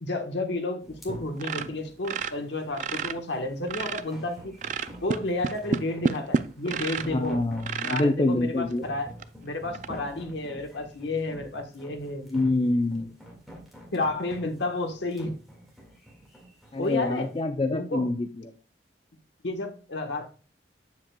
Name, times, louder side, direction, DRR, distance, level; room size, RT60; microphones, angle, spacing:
voice 1, 0.0-4.5 5.0-7.4 7.8-9.1 9.4-12.2 13.9-15.4 16.8-17.3 17.7-18.1 19.4-20.3, left 2 dB, 80° left, 5 dB, 1.1 m, -31 dB
sound 1, 0.8-17.1, right 1 dB, ahead, 1.8 m, -46 dB
sound 2, 1.4-3.2 3.5-4.2 4.6-7.1 7.6-8.1 8.7-8.8 9.2-9.3 9.7-9.9, right 5 dB, 45° right, 0.3 m, -29 dB
voice 2, 7.0-8.8 12.2-13.1 16.7-18.5, left 2 dB, 30° left, 5 dB, 0.5 m, -26 dB
7.6 x 7.4 x 2.2 m, 0.36 s
head